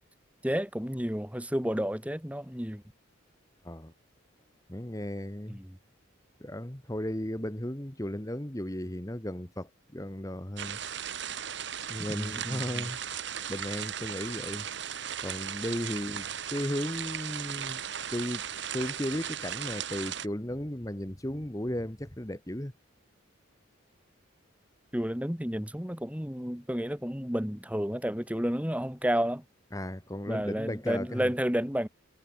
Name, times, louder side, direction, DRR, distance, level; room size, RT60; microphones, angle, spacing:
voice 1, 0.4-2.8 5.5-5.7 12.1-12.9 15.9-16.0 24.9-29.4 30.3-31.9, equal, 5° right, 1.8 m, -31 dB
voice 2, 4.7-5.6 6.4-10.8 11.9-13.0 13.5-14.7 15.2-17.8 18.1-18.4 18.7-22.7 29.7-31.3, equal, 15° left, 1.5 m, -35 dB
sound 1, 10.6-20.3, right 9 dB, 55° right, 1.6 m, -37 dB
head